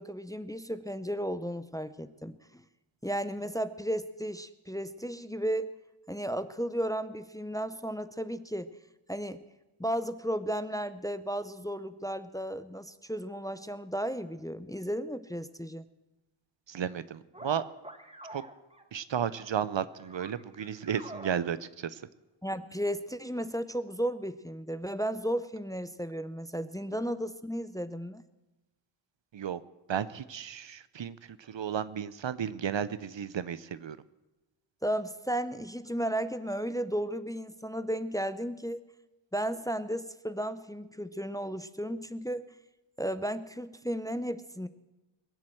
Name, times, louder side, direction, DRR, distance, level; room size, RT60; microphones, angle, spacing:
voice 1, 0.0-2.6 3.0-5.7 6.1-8.7 9.1-9.4 9.8-15.8 22.4-28.2 34.8-38.8 39.3-42.5 43.0-44.7, equal, 5° left, 13 dB, 0.6 m, -34 dB
voice 2, 16.7-17.6 18.3-18.4 18.9-22.0 29.3-29.6 29.9-34.0, right 8 dB, 65° right, 16 dB, 0.7 m, -33 dB
sound 1, 17.3-18.8 19.2-19.5 19.9-21.4, right 1 dB, 10° right, 1.3 m, -46 dB
21.5 x 7.5 x 7.7 m, 1.0 s
wide cardioid pair, 65°, 49 cm